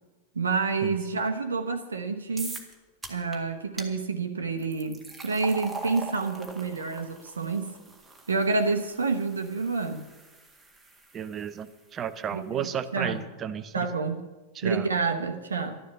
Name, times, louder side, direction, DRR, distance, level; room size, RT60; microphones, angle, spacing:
voice 1, 0.3-2.6 3.1-7.7 8.3-10.1 12.3-13.2 13.7-14.3 14.6-15.8, right 4 dB, 70° right, 6 dB, 1.0 m, -28 dB
sound 1, 2.4-2.7 3.0-3.4 3.8-3.9 4.6-11.7, right 3 dB, 10° right, 1.9 m, -42 dB
voice 2, 11.1-13.9 14.5-14.9, right 8 dB, 25° right, 12 dB, 0.8 m, -33 dB
12.5 x 11.5 x 6.8 m, 1.2 s
figure-of-eight pair, 90°, 0 cm